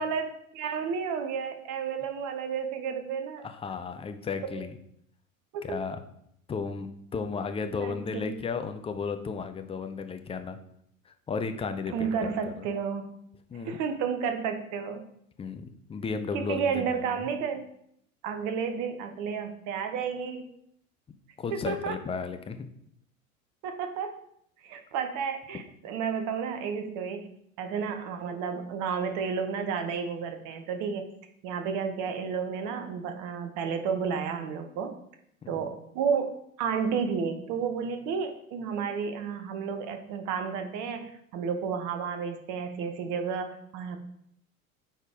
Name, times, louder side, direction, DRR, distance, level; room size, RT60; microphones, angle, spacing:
voice 1, 0.0-3.5 4.5-4.6 5.5-5.8 7.8-8.4 11.9-13.0 13.5-15.0 16.3-17.7 18.2-20.4 21.5-22.0 23.6-24.2 24.6-27.3 27.6-31.1 31.4-34.9 35.5-44.0, right 6 dB, 45° right, 7 dB, 1.2 m, -32 dB
voice 2, 3.4-4.8 5.6-6.0 6.5-10.6 11.1-12.5 13.5-13.8 15.4-17.2 21.4-22.7 35.4-35.7, left 5 dB, 15° left, 8 dB, 0.6 m, -34 dB
9.0 x 4.3 x 5.1 m, 0.72 s
figure-of-eight pair, 75°, 42 cm